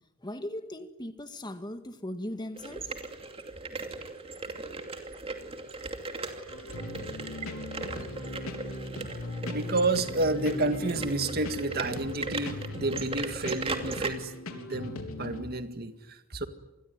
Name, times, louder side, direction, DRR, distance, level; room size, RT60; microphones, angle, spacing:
voice 1, 0.2-2.9, left 1 dB, 20° left, 1.9 m, -38 dB
sound 1, 2.6-14.1, right 3 dB, 25° right, 2.7 m, -38 dB
sound 2, 6.5-15.4, left 1 dB, 85° left, 3.6 m, -39 dB
voice 2, 9.5-16.5, right 2 dB, 45° right, 1.9 m, -30 dB
27.5 x 21.0 x 9.7 m
head